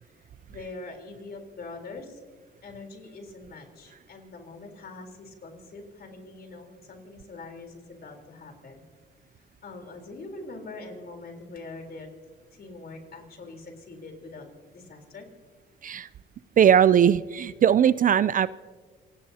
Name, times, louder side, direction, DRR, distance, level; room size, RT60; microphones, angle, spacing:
voice 1, 0.0-2.2 2.6-8.8 9.6-12.1 12.5-14.5 14.7-15.3, left 3 dB, 50° left, 3 dB, 3.8 m, -43 dB
voice 2, 16.6-18.5, right 9 dB, 45° right, 18 dB, 0.4 m, -19 dB
27.5 x 18.0 x 2.8 m, 1.5 s
cardioid pair, 90°, 20 cm